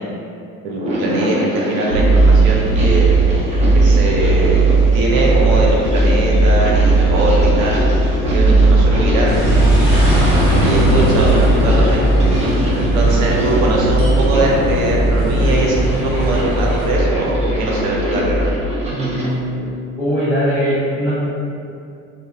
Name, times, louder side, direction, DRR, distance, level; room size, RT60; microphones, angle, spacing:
voice 1, 0.6-3.2 3.7-7.9 8.3-9.5 10.4-12.1 12.7-18.5, right 2 dB, 70° right, -2 dB, 0.6 m, -21 dB
sound 1, 0.7-19.3, equal, 15° right, 0.4 m, -25 dB
sound 2, 1.9-18.6, right 2 dB, 50° left, 0.8 m, -16 dB
sound 3, 9.3-16.9, equal, 50° right, 1.2 m, -21 dB
voice 2, 18.9-19.6 20.0-21.1, equal, 5° left, -15 dB, 0.9 m, -20 dB
2.3 x 2.0 x 2.7 m, 2.5 s
figure-of-eight pair, 65°, 43 cm